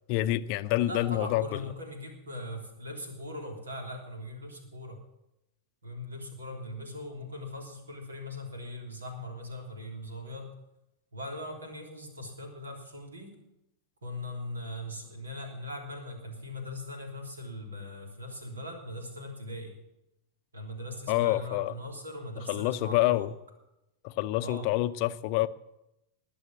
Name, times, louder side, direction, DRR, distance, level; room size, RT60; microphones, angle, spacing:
voice 1, 0.1-1.5 21.1-21.7 22.5-23.3 24.0-25.5, left 15 dB, 45° left, 14 dB, 0.6 m, -27 dB
voice 2, 0.9-5.0 5.8-10.5 11.1-13.4 14.0-19.8 20.5-23.3 24.4-24.7, left 1 dB, 75° right, 3 dB, 3.4 m, -40 dB
20.5 x 7.0 x 7.4 m, 0.87 s
figure-of-eight pair, 90°, 0 cm